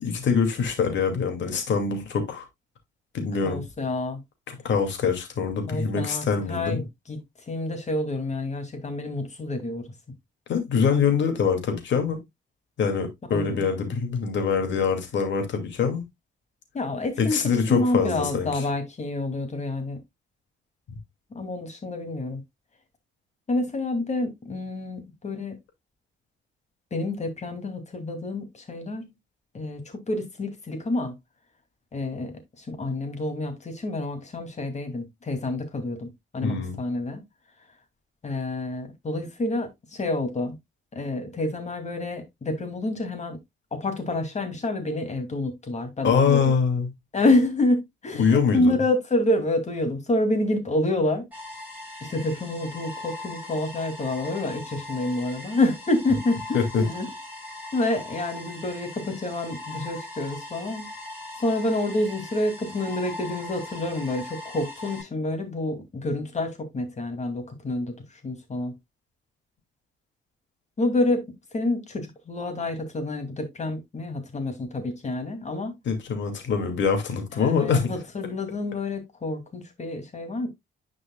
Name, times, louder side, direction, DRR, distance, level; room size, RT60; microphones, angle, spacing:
voice 1, 0.0-2.4 3.1-3.6 4.5-6.8 10.5-12.2 12.8-16.0 17.2-18.6 20.9-21.0 36.4-36.8 46.0-46.9 48.1-48.8 56.5-56.8 75.9-77.9, left 6 dB, 65° left, 2.5 m, -24 dB
voice 2, 3.4-4.2 5.7-7.2 7.5-9.8 13.3-13.7 16.7-17.4 17.7-20.0 21.3-22.4 23.5-25.6 26.9-29.1 29.5-31.1 31.9-37.2 38.2-40.5 40.9-43.4 43.7-46.6 47.1-51.2 52.0-57.1 57.7-60.9 61.4-67.9 68.2-68.7 70.8-71.3 71.5-75.7 77.3-80.5, left 2 dB, 35° left, 2.6 m, -28 dB
sound 1, 51.3-65.0, left 2 dB, 5° right, 6.0 m, -40 dB
10.5 x 5.3 x 2.3 m
cardioid pair, 90°, 20 cm